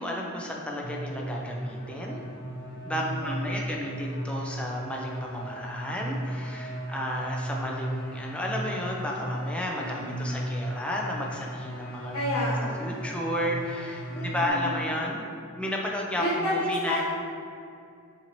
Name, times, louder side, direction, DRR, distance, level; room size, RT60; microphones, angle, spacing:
voice 1, 0.0-2.2 2.8-12.2 12.8-15.2 15.6-17.0, left 1 dB, 5° left, -1 dB, 0.4 m, -32 dB
sound 1, 0.8-14.5, right 1 dB, 60° left, 0.9 m, -35 dB
voice 2, 2.9-3.5 9.7-10.2 12.1-12.7 14.1-14.7 16.2-17.0, left 1 dB, 75° left, -13 dB, 1.3 m, -30 dB
5.7 x 2.7 x 3.0 m, 2.4 s
head